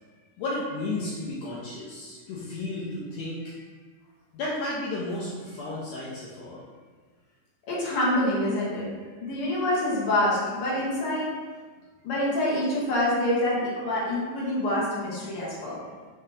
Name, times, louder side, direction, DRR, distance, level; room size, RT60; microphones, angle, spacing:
voice 1, 0.4-3.7 4.3-6.6 15.6-15.7, left 2 dB, 75° left, -6 dB, 1.8 m, -33 dB
voice 2, 7.7-8.9 9.2-11.3 12.0-15.7, left 1 dB, 60° left, -6 dB, 1.7 m, -26 dB
5.7 x 2.9 x 3.2 m, 1.4 s
omnidirectional pair, 3.4 m